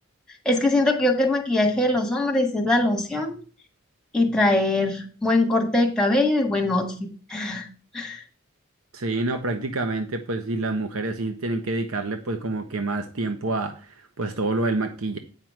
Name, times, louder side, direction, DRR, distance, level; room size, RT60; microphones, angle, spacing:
voice 1, 0.4-3.4 4.1-7.7 7.9-8.2, left 2 dB, 5° left, 1 dB, 1.6 m, -22 dB
voice 2, 8.9-15.2, right 2 dB, 90° right, 7 dB, 0.9 m, -27 dB
9.1 x 5.2 x 4.6 m, 0.39 s
head